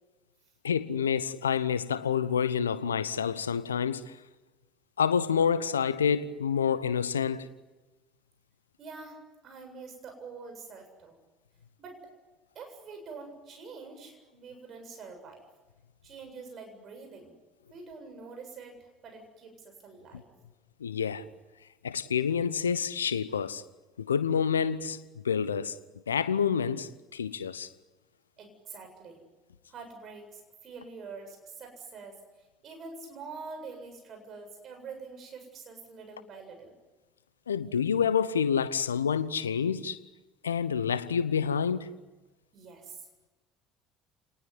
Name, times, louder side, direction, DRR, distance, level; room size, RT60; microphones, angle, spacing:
voice 1, 0.6-4.2 5.0-7.5 20.8-21.2 21.8-23.6 24.0-25.8 26.1-27.7 37.5-40.0 40.4-42.0, left 7 dB, 85° left, 0.9 m, -28 dB
voice 2, 8.8-9.2 9.4-11.2 11.8-12.0 12.5-15.4 16.0-17.3 17.7-20.3 28.4-29.2 29.7-32.2 32.6-36.7 42.5-43.1, right 4 dB, 45° right, 7.8 m, -45 dB
29.5 x 20.0 x 9.8 m
figure-of-eight pair, 60°, 0 cm